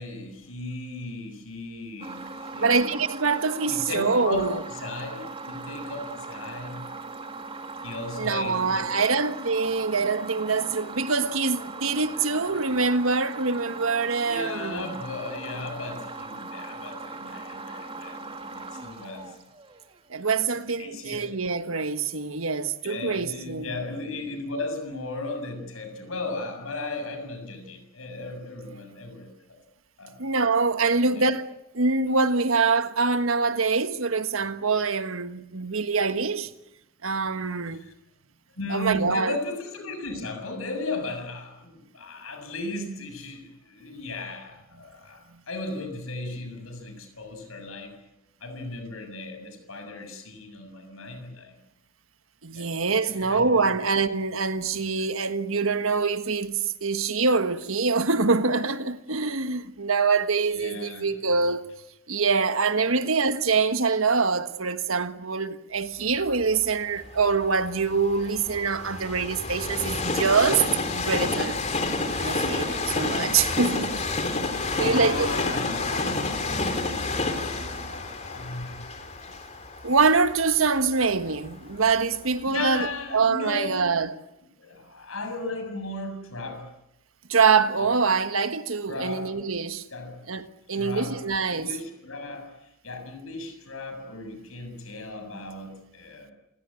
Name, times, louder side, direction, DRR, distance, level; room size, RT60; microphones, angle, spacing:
voice 1, 0.0-2.9 3.7-6.8 7.8-9.2 14.1-19.3 20.8-21.3 22.8-29.3 30.0-30.1 30.9-31.4 37.8-37.9 38.6-45.2 45.5-47.9 48.4-51.6 52.5-52.7 53.1-53.6 60.5-61.1 62.8-63.1 74.7-76.3 77.0-79.1 82.5-83.9 84.6-86.7 88.9-89.3 89.9-90.1 90.7-91.2 91.5-96.3, left 2 dB, 75° left, 7.1 m, -36 dB
sound 1, 2.0-20.0, right 3 dB, 25° right, 2.4 m, -39 dB
voice 2, 2.6-4.6 8.2-14.9 20.1-23.7 30.2-31.5 31.7-36.5 37.0-37.8 38.7-39.4 52.4-61.6 62.1-71.6 72.2-74.0 74.8-75.3 79.8-84.2 87.3-89.8 90.3-91.8, right 4 dB, 70° right, 1.5 m, -24 dB
Train, 66.3-82.2 82.8-82.9, left 3 dB, 30° left, 3.2 m, -30 dB
28.0 x 18.0 x 9.8 m
head